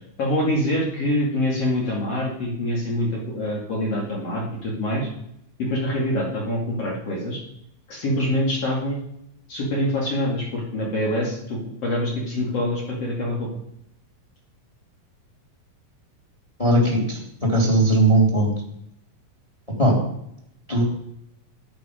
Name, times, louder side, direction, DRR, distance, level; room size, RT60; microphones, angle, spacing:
voice 1, 0.2-5.1 5.6-7.4 7.9-9.0 9.5-13.5, left 1 dB, 50° left, -3 dB, 3.1 m, -25 dB
voice 2, 16.6-17.0 17.4-18.5 19.8-19.9 20.7-20.8, right 1 dB, 10° left, 0 dB, 2.7 m, -18 dB
13.0 x 9.7 x 5.1 m, 0.75 s
omnidirectional pair, 3.8 m